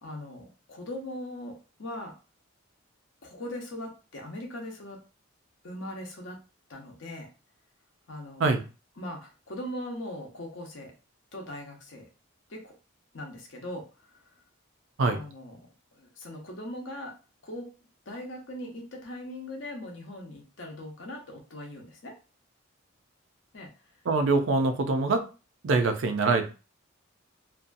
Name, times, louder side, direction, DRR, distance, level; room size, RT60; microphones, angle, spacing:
voice 1, 0.0-2.1 3.2-5.0 5.6-6.4 6.7-7.3 8.1-8.6 9.0-10.9 11.3-12.1 12.5-12.7 13.1-13.8 15.0-15.6 16.0-17.1 17.4-17.7 18.1-22.1 23.5-23.7, left 1 dB, 65° left, 1 dB, 0.7 m, -40 dB
voice 2, 24.1-25.2 25.6-26.5, right 3 dB, 65° right, 6 dB, 0.4 m, -24 dB
2.7 x 2.2 x 2.5 m, 0.32 s
head